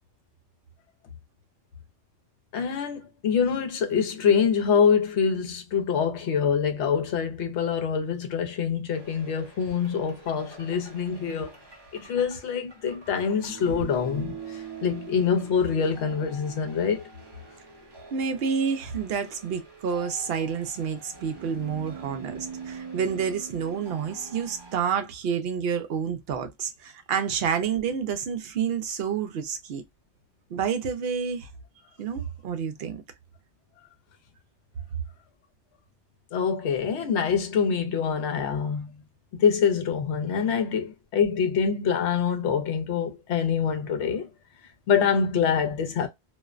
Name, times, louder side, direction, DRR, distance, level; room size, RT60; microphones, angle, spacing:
voice 1, 2.5-11.5 11.9-17.0 36.3-38.9 39.3-44.3 44.9-46.1, left 6 dB, 70° left, 0.9 m, -25 dB
sound 1, 8.9-24.8, right 5 dB, 30° right, 0.5 m, -44 dB
voice 2, 18.1-29.8 30.5-31.5 32.0-33.0, right 7 dB, 60° right, 0.7 m, -29 dB
2.5 x 2.1 x 2.3 m
omnidirectional pair, 1.2 m